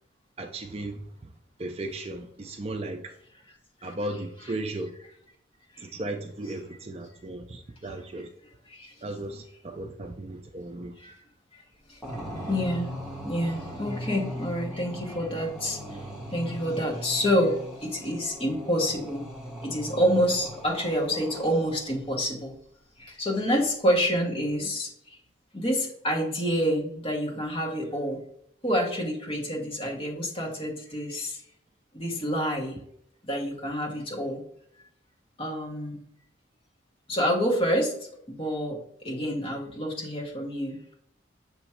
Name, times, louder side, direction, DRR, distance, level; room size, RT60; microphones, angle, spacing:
voice 1, 0.4-1.3 1.6-3.1 3.8-4.9 5.8-8.3 9.0-10.9, right 2 dB, 30° right, 5 dB, 0.4 m, -36 dB
voice 2, 11.9-12.9 13.2-16.0 16.3-19.2 19.6-22.5 23.0-25.2 25.5-28.2 28.6-31.4 31.9-32.8 33.2-34.4 35.4-36.0 37.1-37.9 38.3-40.8, equal, 30° left, -1 dB, 1.3 m, -28 dB
sound 1, 12.0-21.9, equal, ahead, 1.1 m, -39 dB
7.0 x 3.1 x 4.4 m, 0.69 s
head